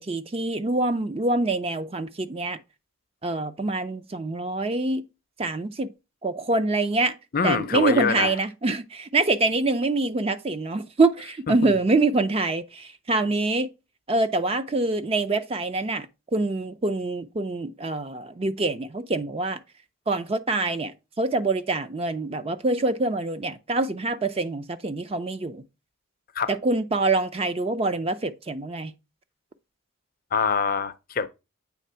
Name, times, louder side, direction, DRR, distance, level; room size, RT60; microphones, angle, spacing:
voice 1, 0.0-2.6 3.2-5.0 5.4-5.9 6.2-7.1 7.4-13.7 14.1-16.1 16.3-19.6 20.1-25.6 26.5-28.9, right 2 dB, 25° right, 0.4 m, -25 dB
voice 2, 7.3-8.3 11.6-11.7 26.3-26.5 30.3-31.3, left 5 dB, 40° left, 0.5 m, -24 dB
8.4 x 3.3 x 5.6 m
head